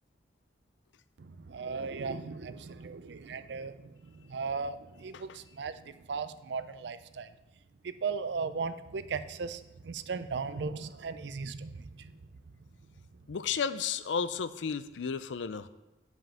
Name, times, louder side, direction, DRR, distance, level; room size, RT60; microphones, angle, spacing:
voice 1, 1.2-7.3 7.8-12.1, right 5 dB, 70° right, 12 dB, 0.5 m, -37 dB
voice 2, 13.3-15.7, left 6 dB, 80° left, 13 dB, 0.5 m, -33 dB
7.3 x 6.0 x 5.6 m, 1.1 s
head